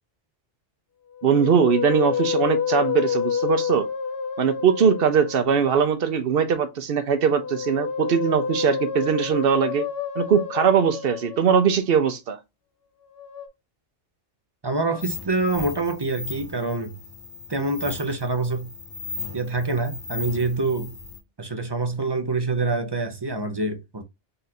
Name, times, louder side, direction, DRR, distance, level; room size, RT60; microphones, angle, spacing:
Musical instrument, 1.2-5.8 7.1-11.9 13.1-13.5, left 7 dB, 60° left, 0.8 m, -29 dB
voice 1, 1.2-3.9 4.4-9.8 10.2-12.4, right 7 dB, 55° right, 0.8 m, -21 dB
voice 2, 14.6-17.0 17.5-18.7 19.3-20.9 21.4-24.0, right 3 dB, 30° right, 0.5 m, -26 dB
sound 1, 15.0-21.2, left 4 dB, 45° left, 1.2 m, -37 dB
3.9 x 2.5 x 4.2 m
omnidirectional pair, 1.2 m